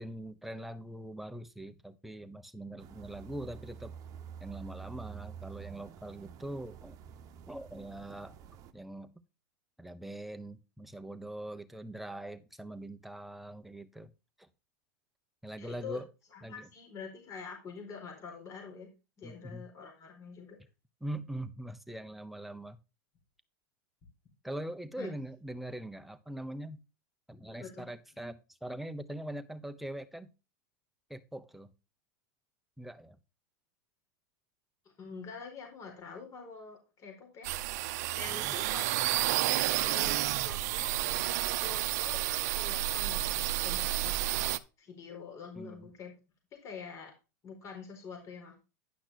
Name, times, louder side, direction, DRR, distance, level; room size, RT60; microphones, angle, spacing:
voice 1, 0.0-3.9 4.4-7.0 7.5-8.4 8.7-9.1 9.8-14.1 14.4-14.5 15.4-16.1 16.4-16.7 19.2-19.6 21.0-22.8 24.4-26.8 27.3-30.3 31.1-31.7 32.8-33.2 38.3-38.6 45.6-45.9, right 1 dB, ahead, 0.9 m, -42 dB
sound 1, 2.8-8.7, right 8 dB, 40° right, 1.1 m, -48 dB
voice 2, 15.6-16.0 16.3-18.9 19.2-20.6 25.0-25.1 27.6-27.9 34.8-37.5 38.1-39.2 39.7-40.9 41.4-44.2 44.8-46.1 46.6-47.1 47.4-48.6, left 5 dB, 35° left, 4.6 m, -46 dB
sound 2, 37.4-44.6, right 15 dB, 65° right, 0.7 m, -31 dB
10.5 x 5.9 x 4.2 m
supercardioid pair, 125°, 10 cm